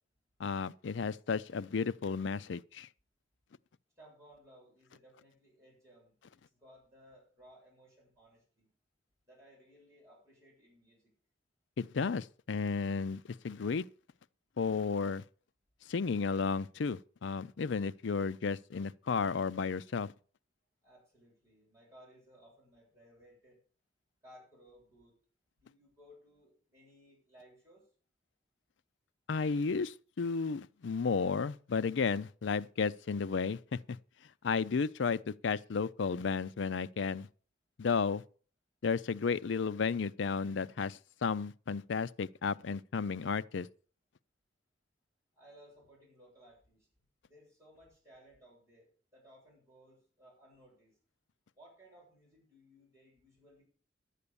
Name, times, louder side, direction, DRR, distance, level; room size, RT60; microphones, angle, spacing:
voice 1, 0.4-2.9 11.8-13.8 14.6-15.2 15.9-20.1 29.3-34.0 34.4-37.3 37.8-38.2 38.8-43.7, left 5 dB, 65° left, 0.5 m, -33 dB
voice 2, 4.0-8.7 9.3-11.1 20.8-23.6 24.2-25.1 25.5-27.8 45.3-46.9 47.2-50.9 51.5-53.6, equal, 15° right, 7.9 m, -60 dB
11.5 x 8.3 x 6.9 m
head